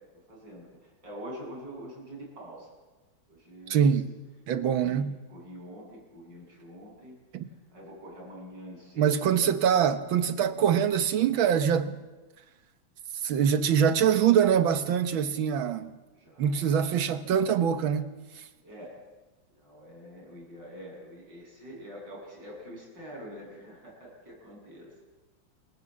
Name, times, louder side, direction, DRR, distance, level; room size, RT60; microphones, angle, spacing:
voice 1, 0.3-2.7 3.3-3.9 4.6-7.2 7.7-9.2 16.1-16.7 18.6-19.0 19.5-24.9, equal, 60° right, 8.8 m, -45 dB
voice 2, 3.7-4.1 4.5-5.1 7.3-7.5 9.0-12.0 13.2-16.0 16.4-18.1, right 8 dB, 80° right, 1.9 m, -24 dB
28.0 x 17.0 x 7.4 m
omnidirectional pair, 2.2 m